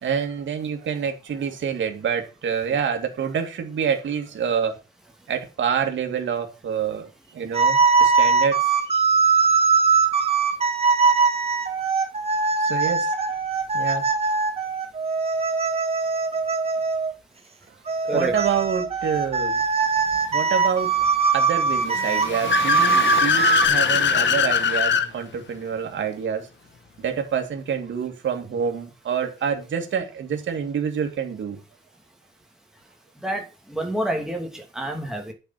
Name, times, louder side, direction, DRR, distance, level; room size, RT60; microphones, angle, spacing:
voice 1, 0.0-4.7 5.3-9.0 12.6-13.1 13.7-14.0 18.1-19.6 20.3-20.9 21.3-26.5 27.0-31.6, right 7 dB, 75° right, 2.4 m, -27 dB
sound 1, 7.5-17.1 17.9-23.7, right 4 dB, 30° right, 1.9 m, -21 dB
Car / Accelerating revving vroom, 21.8-25.1, left 7 dB, 70° left, 1.3 m, -22 dB
voice 2, 33.2-35.3, right 1 dB, 5° right, 2.5 m, -28 dB
9.6 x 6.8 x 5.9 m
wide cardioid pair, 160°, 19 cm